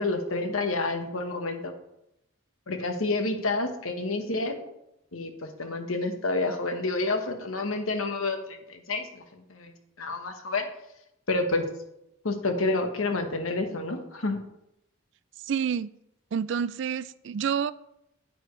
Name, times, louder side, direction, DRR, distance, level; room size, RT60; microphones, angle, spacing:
voice 1, 0.0-1.7 2.7-4.6 5.1-9.7 10.0-10.7 11.3-11.7 12.2-14.4, left 2 dB, 85° left, 1.2 m, -29 dB
voice 2, 15.5-15.9 16.3-17.7, right 7 dB, 60° right, 0.3 m, -28 dB
9.5 x 9.0 x 3.2 m
head